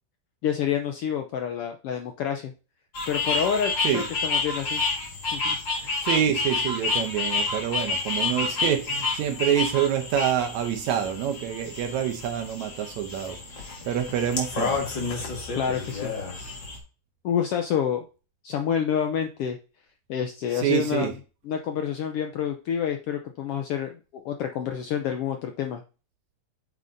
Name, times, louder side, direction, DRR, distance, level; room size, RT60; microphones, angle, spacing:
voice 1, 0.4-2.5 3.1-6.0 15.5-16.1 17.2-18.0 18.4-19.6 20.1-21.1 21.5-25.8, left 8 dB, 75° left, 1.4 m, -28 dB
sound 1, 2.9-16.8, left 4 dB, 45° left, 2.3 m, -29 dB
voice 2, 6.0-14.8 20.5-21.1, right 10 dB, 80° right, 2.1 m, -27 dB
8.8 x 6.5 x 2.7 m
omnidirectional pair, 3.3 m